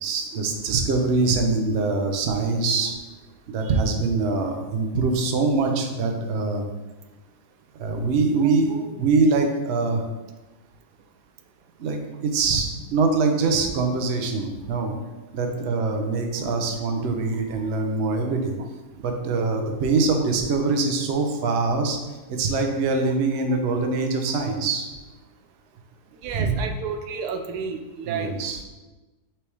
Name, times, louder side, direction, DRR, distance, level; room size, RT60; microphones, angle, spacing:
voice 1, 0.0-3.0 3.5-6.6 7.8-10.0 11.8-14.9 15.3-18.5 19.0-22.0 22.3-24.9 26.3-26.6 28.1-28.6, right 3 dB, 55° right, 3 dB, 0.8 m, -23 dB
voice 2, 26.2-28.3, right 6 dB, 80° right, 5 dB, 1.1 m, -31 dB
6.0 x 3.4 x 4.7 m, 1.2 s
omnidirectional pair, 1.7 m